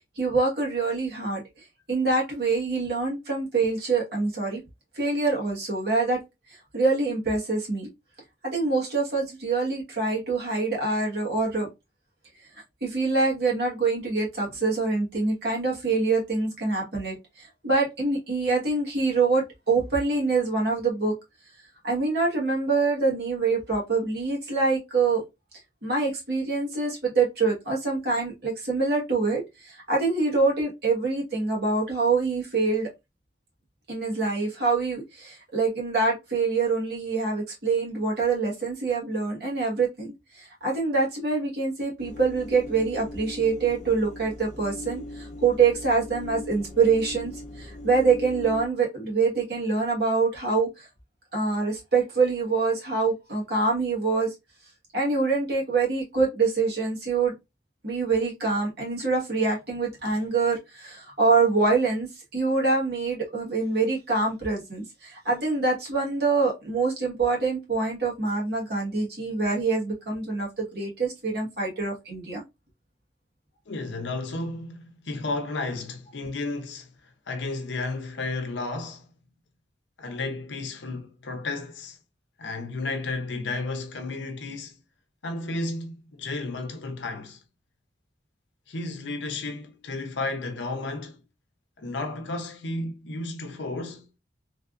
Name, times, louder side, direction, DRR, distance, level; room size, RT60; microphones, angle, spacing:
voice 1, 0.1-1.4 1.9-4.6 4.9-6.2 6.5-7.9 8.4-11.7 12.8-21.1 21.8-25.2 25.8-32.9 33.9-50.9 51.3-54.3 54.9-57.3 57.8-62.1 62.3-72.4, right 4 dB, 60° right, 1.3 m, -25 dB
sound 1, 42.0-48.7, left 1 dB, 40° left, 0.5 m, -40 dB
voice 2, 73.7-76.9 77.3-79.1 80.0-82.0 82.4-84.8 85.2-87.4 88.7-91.2 91.8-94.1, left 2 dB, 85° left, 0.6 m, -33 dB
3.3 x 2.4 x 2.4 m
head